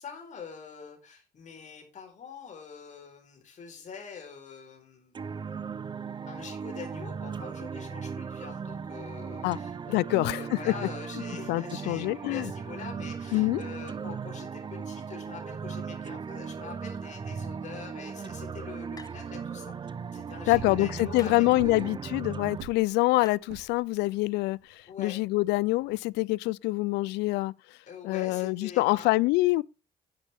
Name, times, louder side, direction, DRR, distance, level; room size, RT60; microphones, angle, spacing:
voice 1, 0.0-5.2 6.3-19.7 20.1-21.9 24.9-25.1 27.9-29.1, left 6 dB, 45° left, 4.3 m, -44 dB
sound 1, 5.1-22.6, right 6 dB, 25° right, 0.6 m, -37 dB
voice 2, 9.9-10.7 11.5-12.5 13.3-13.6 20.5-27.5 28.0-29.6, left 21 dB, 85° left, 0.4 m, -26 dB
sound 2, 19.0-19.5 21.2-21.5 23.2-23.3, left 4 dB, 20° left, 0.7 m, -48 dB
sound 3, 20.5-26.2, right 11 dB, 75° right, 1.1 m, -47 dB
10.0 x 9.7 x 3.5 m
cardioid pair, 110°, 17 cm